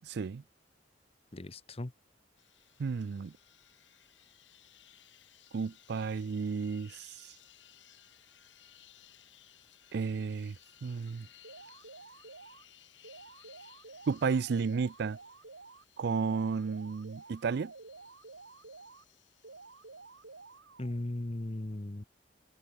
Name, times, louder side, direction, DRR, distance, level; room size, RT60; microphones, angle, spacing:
voice 1, 0.0-0.4 2.8-3.3 5.5-7.3 9.9-11.3 14.1-15.2 16.0-17.7, right 5 dB, 60° right, 0.4 m, -33 dB
voice 2, 1.3-1.9 20.8-22.0, left 1 dB, 35° left, 0.9 m, -37 dB
sound 1, 2.4-20.6, left 11 dB, 75° left, 7.9 m, -61 dB
sound 2, 11.4-12.6 13.0-15.8 16.2-19.0 19.4-21.0, right 3 dB, 90° right, 2.3 m, -51 dB
head